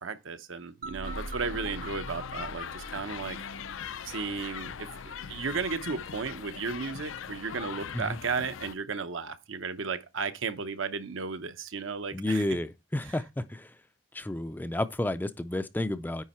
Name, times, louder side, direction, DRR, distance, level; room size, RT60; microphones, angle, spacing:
voice 1, 0.0-3.4 4.0-4.9 5.3-12.4, right 5 dB, 75° right, 0.8 m, -34 dB
sound 1, 0.8-3.9, right 2 dB, 45° right, 0.6 m, -42 dB
sound 2, 1.0-8.7, left 7 dB, 75° left, 0.5 m, -41 dB
voice 2, 12.1-13.8 14.1-16.2, left 1 dB, 10° left, 0.3 m, -31 dB
9.5 x 3.7 x 4.2 m
head